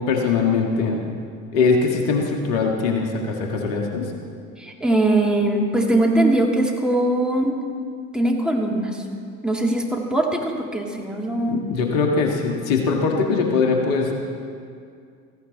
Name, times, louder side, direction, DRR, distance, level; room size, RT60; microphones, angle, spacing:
voice 1, 0.1-1.0 1.5-4.1 11.5-14.1, left 4 dB, 65° left, 1 dB, 2.0 m, -21 dB
voice 2, 4.6-7.6 8.1-9.0 9.4-11.6, right 1 dB, ahead, -1 dB, 2.3 m, -21 dB
16.0 x 15.0 x 4.1 m, 2.3 s
hypercardioid pair, 70°, 42 cm